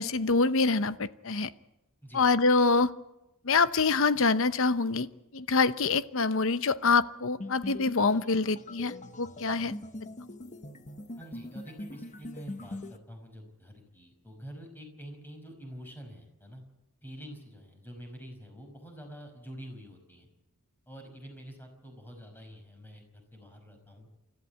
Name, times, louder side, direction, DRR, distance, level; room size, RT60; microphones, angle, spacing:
voice 1, 0.0-1.5 2.1-2.9 3.4-5.1 5.3-9.7, left 4 dB, 65° left, 14 dB, 0.8 m, -25 dB
sound 1, 7.4-13.0, left 1 dB, 35° left, 1.1 m, -42 dB
voice 2, 11.2-16.6 17.0-20.3 20.9-24.1, equal, 10° left, 4 dB, 5.4 m, -47 dB
29.0 x 14.0 x 8.4 m, 0.96 s
head